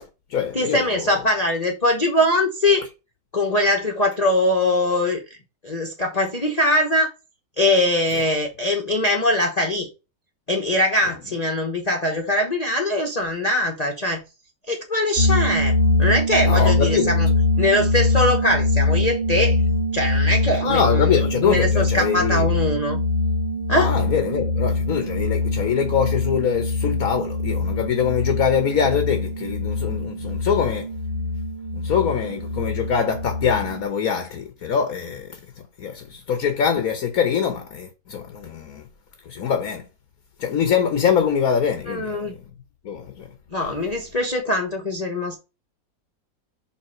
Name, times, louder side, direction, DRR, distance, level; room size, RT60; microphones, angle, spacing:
voice 1, 0.0-0.8 16.4-17.1 20.6-22.5 23.7-30.9 31.7-38.9 39.2-39.8 40.4-42.3 42.8-43.3 43.6-43.7, left 7 dB, 55° left, 1.4 m, -23 dB
voice 2, 0.5-2.9 3.3-5.2 5.6-7.1 7.6-9.9 10.5-14.2 14.7-15.7 16.0-17.3 17.6-19.6 19.9-23.0 23.7-23.9 41.9-42.3 43.5-45.4, left 1 dB, 25° left, 1.1 m, -22 dB
sound 1, 15.2-33.8, left 3 dB, 35° right, 1.6 m, -23 dB
5.8 x 4.0 x 5.7 m
omnidirectional pair, 1.9 m